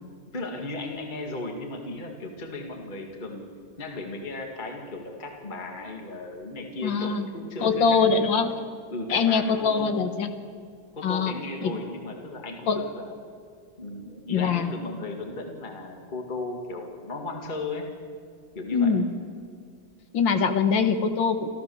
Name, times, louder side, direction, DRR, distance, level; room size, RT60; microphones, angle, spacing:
voice 1, 0.3-3.5 3.8-8.5 8.9-10.1 10.9-13.1 13.8-17.9 18.5-18.9, left 2 dB, 25° left, 2 dB, 2.0 m, -36 dB
voice 2, 6.8-7.3 7.6-8.5 9.1-10.3 11.0-11.3 11.6-11.7 12.7-12.8 14.3-14.8 18.7-19.1 20.1-21.5, left 5 dB, 70° left, 8 dB, 2.1 m, -23 dB
27.0 x 14.5 x 7.0 m, 2.1 s
omnidirectional pair, 2.2 m